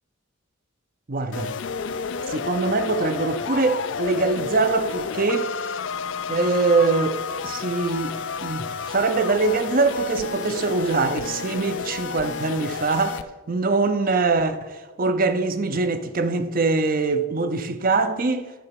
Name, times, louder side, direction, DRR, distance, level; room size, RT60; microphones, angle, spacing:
voice 1, 1.1-1.6 2.3-5.5 6.3-18.5, right 3 dB, 40° right, 0.6 m, -23 dB
sound 1, 1.3-13.2, left 6 dB, 55° left, 0.4 m, -31 dB
11.0 x 4.6 x 5.9 m
head